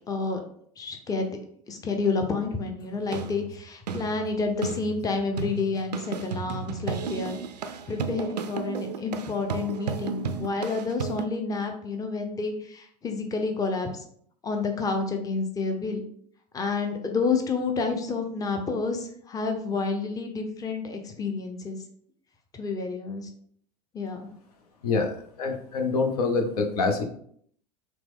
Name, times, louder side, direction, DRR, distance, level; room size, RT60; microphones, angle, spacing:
voice 1, 0.1-0.4 0.8-1.4 1.7-7.4 7.9-13.9 14.4-16.0 16.5-21.8 22.6-23.3 23.9-24.2, left 4 dB, 15° left, 4 dB, 0.7 m, -29 dB
sound 1, 2.9-11.3, right 6 dB, 80° right, 0.4 m, -34 dB
voice 2, 24.8-27.0, left 4 dB, 65° left, 5 dB, 0.7 m, -26 dB
5.8 x 2.2 x 3.6 m, 0.64 s
figure-of-eight pair, 80°, 21 cm